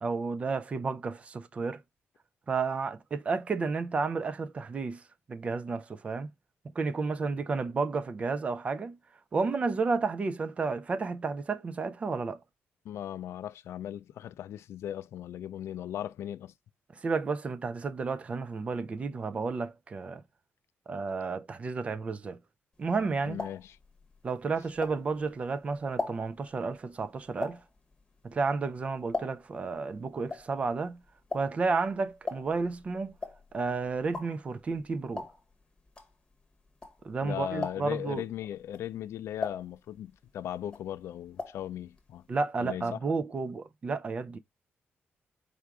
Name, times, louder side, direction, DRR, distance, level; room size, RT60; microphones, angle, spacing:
voice 1, 0.0-1.8 2.5-5.0 5.3-6.3 6.8-9.0 9.3-12.4 16.9-20.2 20.9-22.4 22.8-23.4 24.2-27.6 28.2-31.0 31.3-33.1 33.5-35.3 37.0-38.2 42.3-44.4, right 4 dB, 30° right, 0.4 m, -31 dB
voice 2, 12.8-16.5 23.3-23.8 37.2-42.2 42.6-43.0, left 11 dB, 75° left, 0.4 m, -38 dB
sound 1, 22.8-25.4 25.7-29.7 29.9-37.2 37.5-38.1 38.6-40.3 40.6-41.7 41.9-42.0 42.3-42.4, left 3 dB, 15° left, 0.9 m, -40 dB
4.6 x 2.4 x 4.7 m
wide cardioid pair, 170°, 5 cm